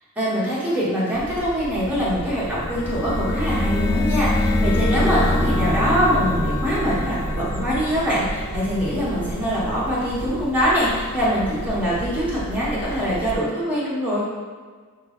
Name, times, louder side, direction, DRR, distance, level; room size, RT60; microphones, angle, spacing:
voice 1, 0.1-14.2, equal, 5° right, -10 dB, 1.4 m, -23 dB
sound 1, 1.1-13.4, right 1 dB, 55° right, 0.5 m, -34 dB
sound 2, 2.5-9.2, left 1 dB, 15° left, 0.3 m, -24 dB
4.7 x 3.0 x 3.2 m, 1.5 s
head